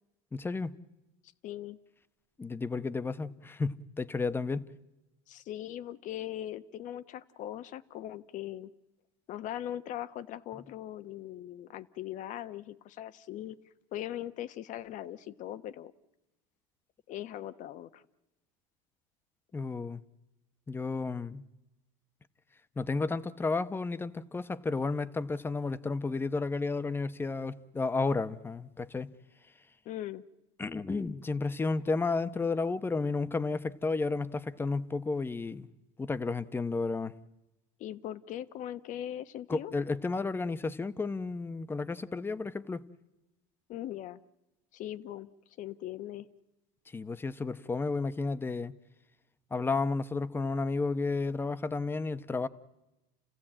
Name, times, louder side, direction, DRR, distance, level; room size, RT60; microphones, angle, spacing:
voice 1, 0.3-0.7 2.4-4.7 19.5-20.0 20.7-21.4 22.8-29.1 30.6-35.7 36.0-37.1 39.5-42.8 46.9-48.7 49.5-52.5, left 3 dB, 10° left, 0.9 m, -32 dB
voice 2, 1.4-1.8 5.3-8.7 9.3-13.6 13.9-15.9 17.1-18.0 29.8-30.2 37.8-39.7 43.7-44.2 44.7-45.3 45.6-46.3, left 12 dB, 45° left, 1.1 m, -40 dB
29.5 x 15.5 x 8.8 m
supercardioid pair, 125°, 18 cm